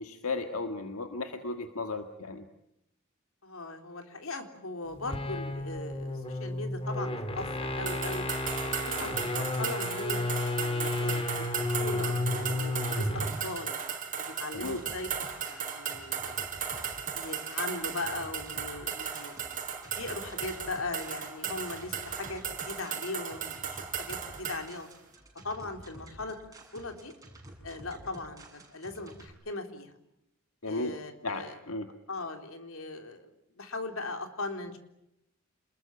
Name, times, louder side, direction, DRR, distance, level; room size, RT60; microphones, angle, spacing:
voice 1, 0.0-2.4 14.5-14.8 30.6-30.9 31.2-31.9, left 3 dB, 90° left, 7 dB, 1.8 m, -35 dB
voice 2, 3.4-8.3 8.8-10.2 10.6-11.4 11.8-13.8 14.2-15.1 15.5-16.4 17.1-19.6 20.0-24.9 25.4-26.4 26.7-27.1 27.6-30.0 30.6-31.6 32.1-33.3 33.6-34.8, left 2 dB, 70° left, 6 dB, 3.8 m, -39 dB
sound 1, 4.9-13.4, left 2 dB, 25° left, 2.9 m, -32 dB
sound 2, 7.9-24.6, right 7 dB, 40° right, 4.5 m, -36 dB
sound 3, 14.5-29.3, right 1 dB, 15° right, 7.5 m, -50 dB
28.5 x 21.0 x 9.0 m, 0.83 s
head